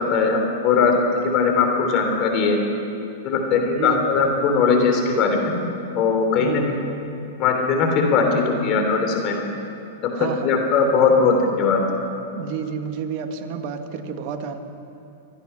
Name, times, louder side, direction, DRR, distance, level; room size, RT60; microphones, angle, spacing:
voice 1, 0.0-2.6 3.2-5.5 5.9-6.6 7.4-9.5 10.4-11.8, left 5 dB, 40° left, 3 dB, 3.0 m, -19 dB
voice 2, 3.7-4.1 6.3-6.8 10.1-10.5 12.3-14.6, right 6 dB, 50° right, 7 dB, 1.4 m, -30 dB
25.0 x 9.7 x 5.6 m, 2.7 s
hypercardioid pair, 115°, 0 cm